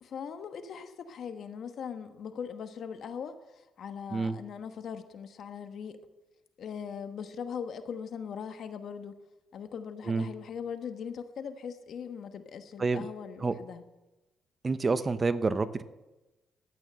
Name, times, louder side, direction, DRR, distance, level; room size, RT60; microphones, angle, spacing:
voice 1, 0.0-6.0 6.6-9.2 9.5-13.8, left 7 dB, 65° left, 8 dB, 1.2 m, -40 dB
voice 2, 14.6-15.8, right 4 dB, 30° right, 13 dB, 0.7 m, -28 dB
12.5 x 9.2 x 7.6 m, 1.0 s
cardioid pair, 90°, 0 cm